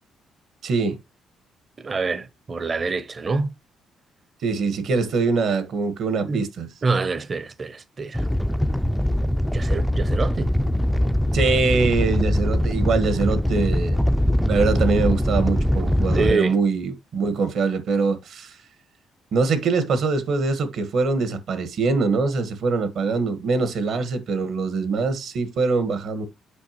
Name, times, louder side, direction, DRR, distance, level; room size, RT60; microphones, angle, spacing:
voice 1, 0.6-1.0 4.4-6.7 11.3-14.0 14.5-18.5 19.3-26.3, right 4 dB, 65° right, 1.5 m, -23 dB
voice 2, 1.8-3.5 6.3-6.4 6.8-8.2 9.5-10.5 16.1-16.6, right 4 dB, 35° right, 0.7 m, -25 dB
Animal, 8.1-16.3, equal, ahead, 0.3 m, -22 dB
8.2 x 5.6 x 3.0 m
cardioid pair, 110°, 0 cm